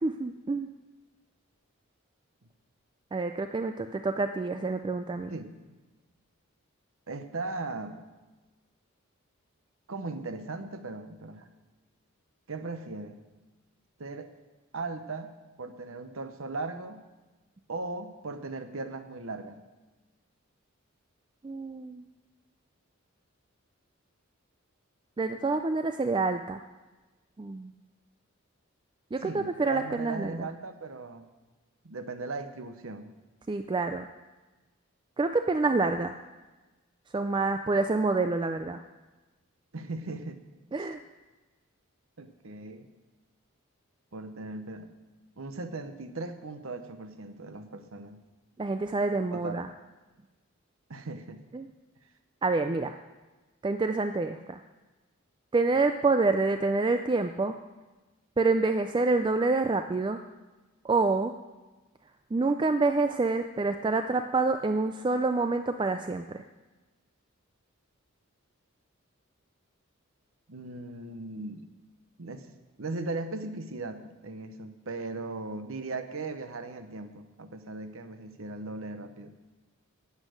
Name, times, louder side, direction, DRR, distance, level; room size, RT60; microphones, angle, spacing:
voice 1, 0.0-0.7 3.1-5.3 21.4-22.0 25.2-26.6 27.4-27.7 29.1-30.5 33.5-34.1 35.2-36.2 37.1-38.8 40.7-41.0 48.6-49.7 51.5-51.7 52.4-53.0 53.6-54.6 55.5-57.5 58.4-60.2 60.8-61.3 62.3-66.4, right 3 dB, 20° right, 8 dB, 0.3 m, -27 dB
voice 2, 7.1-8.0 9.9-11.5 12.5-13.2 14.0-14.3 14.7-17.0 17.7-19.6 29.2-31.2 31.8-33.1 39.7-40.4 42.2-42.9 44.1-44.9 45.4-48.2 49.3-49.6 50.9-51.4 70.5-71.7 72.2-72.5 72.8-79.3, right 3 dB, 70° right, 9 dB, 0.9 m, -38 dB
11.5 x 8.3 x 6.4 m, 1.2 s
head